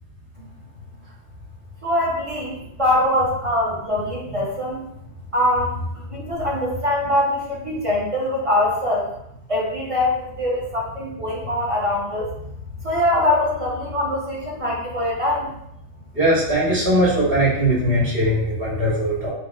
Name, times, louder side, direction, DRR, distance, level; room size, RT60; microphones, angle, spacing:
voice 1, 1.8-4.8 5.3-9.1 9.5-12.3 12.8-15.5, left 1 dB, 30° right, -4 dB, 0.7 m, -23 dB
voice 2, 16.1-19.3, right 1 dB, 50° right, -7 dB, 1.6 m, -20 dB
5.2 x 2.3 x 2.3 m, 0.78 s
omnidirectional pair, 1.2 m